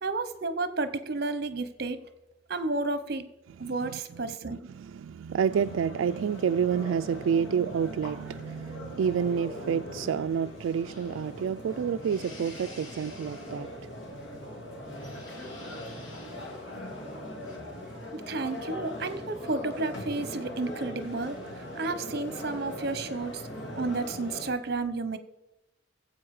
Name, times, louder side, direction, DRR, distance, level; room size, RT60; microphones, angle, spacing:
voice 1, 0.0-2.0 2.5-3.3 3.6-4.6 18.1-23.5 23.8-25.2, right 3 dB, 50° right, 0.9 m, -32 dB
voice 2, 3.6-4.0 4.5-13.9 15.2-15.3, right 7 dB, 85° right, 0.3 m, -29 dB
sound 1, 5.5-24.5, left 1 dB, 70° left, 2.6 m, -41 dB
sound 2, 10.8-17.6, left 2 dB, 85° left, 2.7 m, -52 dB
15.5 x 7.8 x 4.8 m
head